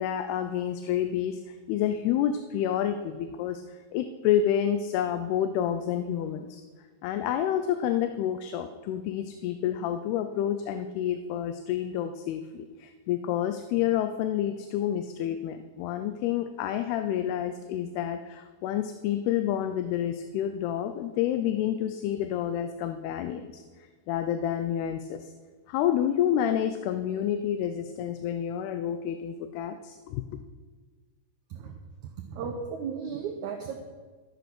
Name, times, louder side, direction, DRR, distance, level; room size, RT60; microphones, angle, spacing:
voice 1, 0.0-3.6 3.9-6.6 7.0-23.6 24.1-25.3 25.7-30.2, left 10 dB, 90° left, 9 dB, 2.6 m, -29 dB
voice 2, 32.3-33.8, right 6 dB, 75° right, 3 dB, 1.8 m, -34 dB
13.5 x 8.3 x 6.1 m, 1.4 s
omnidirectional pair, 4.5 m